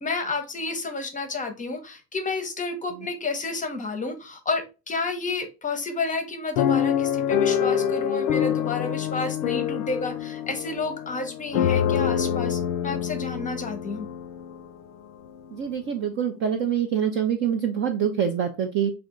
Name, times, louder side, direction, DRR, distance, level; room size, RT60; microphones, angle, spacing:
voice 1, 0.0-14.1, left 3 dB, 15° left, 7 dB, 0.7 m, -30 dB
sound 1, 6.6-14.7 15.3-15.4 15.6-15.9, left 9 dB, 65° left, 0.6 m, -26 dB
voice 2, 15.5-18.9, right 8 dB, 30° right, 5 dB, 0.3 m, -25 dB
3.3 x 2.4 x 3.7 m, 0.29 s
hypercardioid pair, 80°, 48 cm